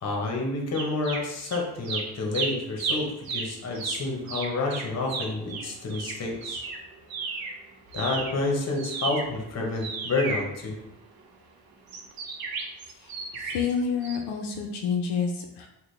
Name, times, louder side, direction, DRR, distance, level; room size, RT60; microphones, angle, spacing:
voice 1, 0.0-6.6 7.9-10.8, left 3 dB, 40° left, 0 dB, 0.8 m, -29 dB
sound 1, 0.7-1.6 1.8-7.6 7.9-11.2 11.9-13.7 14.0-14.2, right 4 dB, 60° right, 0.7 m, -33 dB
voice 2, 13.0-15.7, left 6 dB, 80° left, 2 dB, 0.5 m, -29 dB
3.9 x 2.2 x 3.2 m, 0.90 s
cardioid pair, 125°, 40 cm